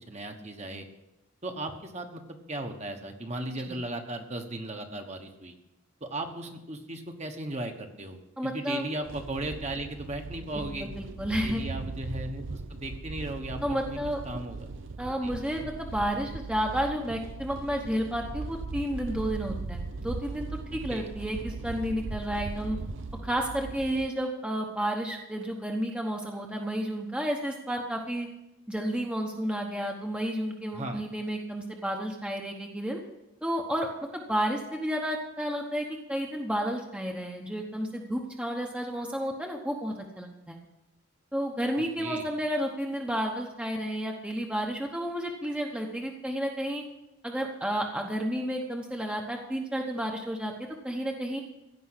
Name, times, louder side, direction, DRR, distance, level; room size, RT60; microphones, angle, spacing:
voice 1, 0.1-0.9 1.4-5.5 6.0-10.9 11.4-13.6 13.8-14.0 14.2-14.7 15.2-15.3 20.9-21.1 30.7-31.0 42.0-42.3, right 1 dB, 30° right, 4 dB, 1.2 m, -36 dB
voice 2, 8.4-8.8 10.5-11.6 13.6-14.2 15.0-22.8 23.2-28.3 28.7-33.0 33.4-40.6 41.3-46.8 47.2-50.5 50.8-51.4, equal, 5° right, 1 dB, 1.0 m, -31 dB
sound 1, 9.0-24.1, right 3 dB, 60° right, 0.7 m, -39 dB
16.0 x 5.4 x 9.8 m, 0.94 s
head